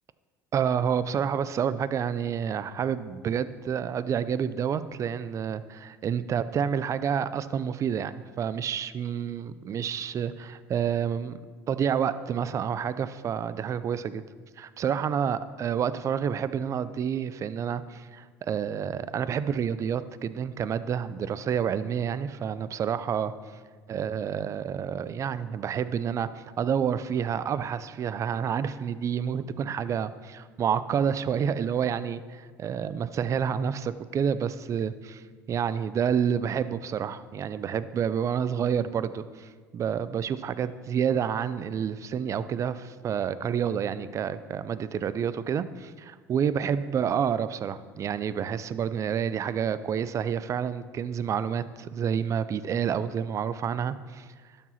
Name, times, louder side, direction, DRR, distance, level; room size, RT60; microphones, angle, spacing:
voice 1, 0.5-11.4 11.7-14.2 14.6-23.3 23.9-35.2 35.5-54.3, right 8 dB, 40° right, 15 dB, 0.5 m, -29 dB
12.0 x 4.8 x 5.7 m, 1.6 s
hypercardioid pair, 80°, 8 cm